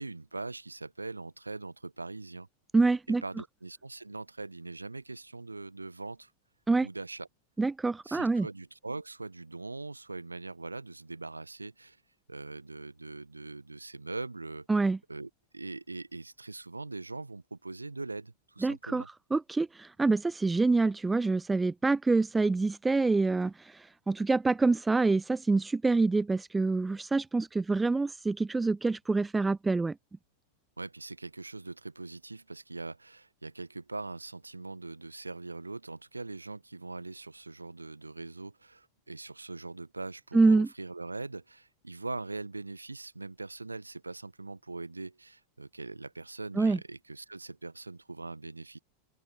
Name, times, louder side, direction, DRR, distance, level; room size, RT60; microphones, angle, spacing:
voice 1, 0.0-2.5 3.2-6.3 6.8-7.3 8.0-12.0 12.3-14.7 15.1-19.1 30.8-48.8, right 3 dB, 80° right, 1.6 m, -41 dB
voice 2, 2.7-3.2 6.7-6.9 7.6-8.5 14.7-15.0 18.6-19.0 19.3-30.0 40.3-40.7 46.6-46.8, right 3 dB, 10° right, 0.4 m, -26 dB
open air
figure-of-eight pair, 90°, 0 cm